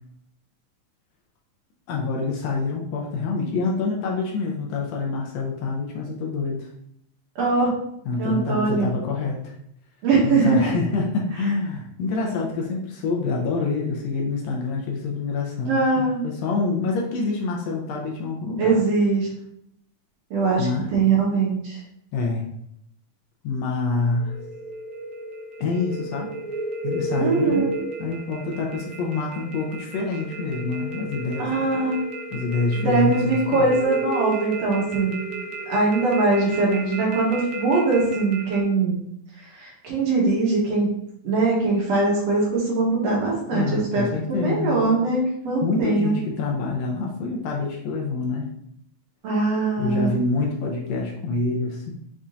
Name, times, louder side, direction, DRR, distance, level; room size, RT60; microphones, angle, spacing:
voice 1, 1.9-6.7 8.1-9.5 10.2-18.8 20.6-20.9 22.1-22.4 23.4-24.4 25.6-26.3 26.8-27.7 28.0-31.6 32.3-33.7 43.5-44.9 45.6-48.5 49.8-51.9, left 3 dB, 75° left, 0 dB, 1.7 m, -26 dB
voice 2, 7.4-7.7 8.2-8.9 10.0-10.7 15.7-16.2 18.6-19.3 20.3-21.8 27.2-27.8 31.4-32.0 32.7-35.2 35.7-39.0 39.5-41.0 41.2-46.2 49.2-50.1, right 3 dB, 65° right, -4 dB, 2.2 m, -22 dB
sound 1, 23.8-38.6, right 2 dB, 80° right, 2.1 m, -33 dB
5.6 x 3.6 x 2.6 m, 0.72 s
omnidirectional pair, 3.3 m